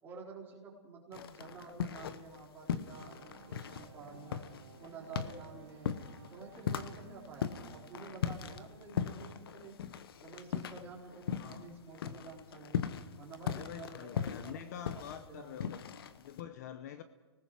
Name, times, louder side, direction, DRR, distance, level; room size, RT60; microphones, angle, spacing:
voice 1, 0.0-4.4 4.8-5.9 6.3-9.8 10.2-12.8 13.2-15.5, right 4 dB, 15° right, -4 dB, 4.1 m, -50 dB
sound 1, 1.1-2.4 2.7-11.7 11.9-16.4, left 8 dB, 55° left, 1.1 m, -38 dB
sound 2, 2.8-9.7, right 8 dB, 50° right, 2.9 m, -57 dB
voice 2, 11.3-11.8 13.5-17.0, left 9 dB, 35° left, 11 dB, 0.8 m, -47 dB
29.5 x 19.0 x 4.9 m, 1.2 s
hypercardioid pair, 165°, 15 cm